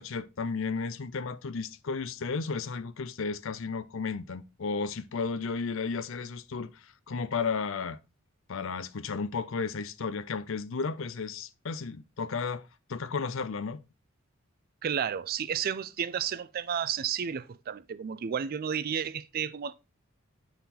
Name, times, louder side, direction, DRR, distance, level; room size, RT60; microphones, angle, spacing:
voice 1, 0.0-8.0 8.5-13.8, left 4 dB, 65° left, 0.6 m, -33 dB
voice 2, 14.8-19.7, right 8 dB, 45° right, 0.4 m, -32 dB
8.4 x 4.0 x 4.1 m
head